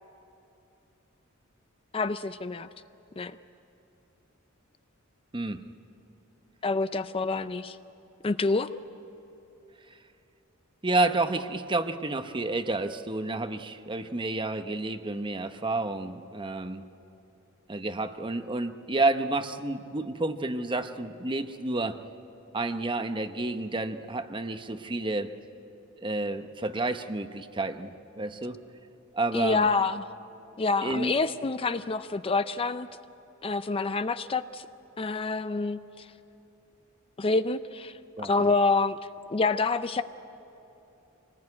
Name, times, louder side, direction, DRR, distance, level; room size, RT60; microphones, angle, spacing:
voice 1, 1.9-2.7 3.2-3.4 6.6-7.8 8.2-8.7 29.3-30.1 30.6-32.9 33.4-34.7 35.0-36.1 37.2-37.9 38.2-39.0 39.3-40.0, left 3 dB, 25° left, 12 dB, 0.5 m, -27 dB
voice 2, 10.8-16.8 17.7-22.0 22.5-25.3 26.0-28.6 29.1-29.7 30.8-31.1 38.2-38.5, right 2 dB, 25° right, 9 dB, 0.8 m, -30 dB
25.5 x 19.0 x 9.7 m, 3.0 s
head